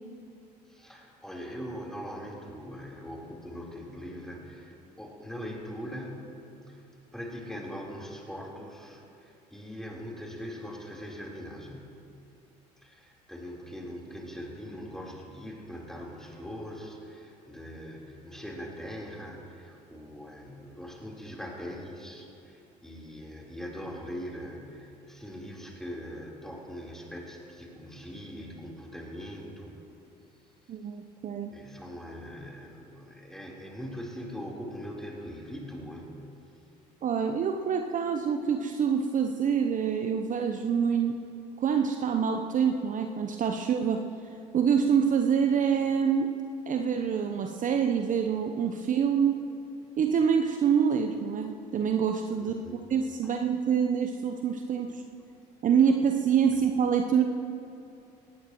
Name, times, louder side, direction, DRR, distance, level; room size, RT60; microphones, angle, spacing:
voice 1, 0.7-6.8 7.1-12.0 12.8-29.8 31.5-36.1 52.4-52.8 53.2-53.3, equal, ahead, -3 dB, 4.0 m, -41 dB
voice 2, 30.7-31.5 37.0-41.2 41.6-44.0 44.5-46.3 46.7-49.4 50.0-55.0 55.6-57.2, right 7 dB, 40° right, 5 dB, 0.8 m, -26 dB
20.0 x 17.5 x 3.1 m, 2.7 s
hypercardioid pair, 65°, 21 cm